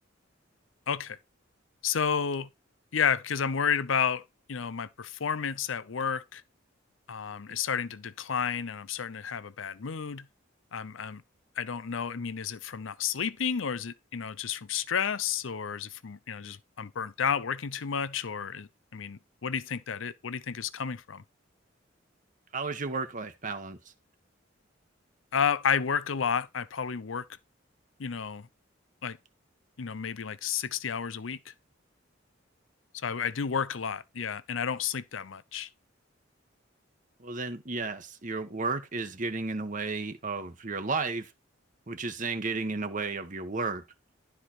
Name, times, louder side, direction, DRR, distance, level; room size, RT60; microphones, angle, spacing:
voice 1, 0.9-1.2 1.8-2.5 2.9-6.4 7.1-10.3 10.7-11.2 11.6-21.2 25.3-27.3 28.0-28.5 29.0-29.2 29.8-31.5 33.0-35.7, left 7 dB, 85° left, 0.6 m, -31 dB
voice 2, 22.5-23.8 37.2-41.3 41.9-43.8, right 3 dB, 40° right, 1.1 m, -33 dB
12.0 x 4.7 x 4.3 m
head